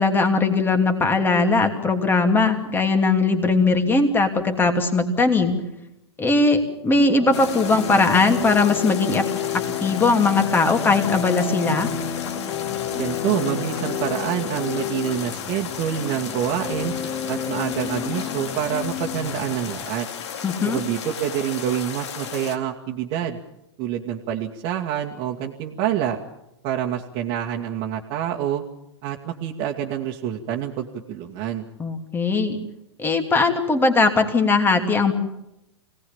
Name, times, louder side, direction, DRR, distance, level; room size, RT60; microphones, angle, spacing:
voice 1, 0.0-5.6 6.2-9.3 9.5-11.9 20.4-20.8 31.8-32.6 33.0-35.1, left 3 dB, 15° left, 5 dB, 2.8 m, -19 dB
sound 1, 7.2-19.6, left 9 dB, 40° left, 2.6 m, -30 dB
sound 2, 7.3-22.6, left 7 dB, 70° left, 2.3 m, -34 dB
voice 2, 12.9-16.9 17.3-20.1 20.6-23.4 23.8-26.2 26.6-28.6 29.0-31.7, right 10 dB, 40° right, -2 dB, 2.1 m, -27 dB
25.0 x 18.5 x 7.2 m, 0.86 s
hypercardioid pair, 120°, 15 cm